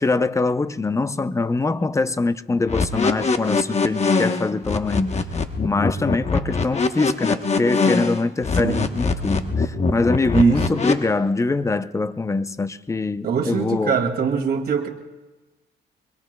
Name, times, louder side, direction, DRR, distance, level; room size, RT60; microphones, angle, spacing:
voice 1, 0.0-5.2 5.6-14.0, left 3 dB, 15° left, 0.6 m, -23 dB
sound 1, 2.7-10.9, left 4 dB, 35° left, 1.1 m, -22 dB
voice 2, 10.3-10.7 13.2-14.9, right 6 dB, 50° right, 2.3 m, -22 dB
24.0 x 22.5 x 2.3 m
cardioid pair, 90°, 20 cm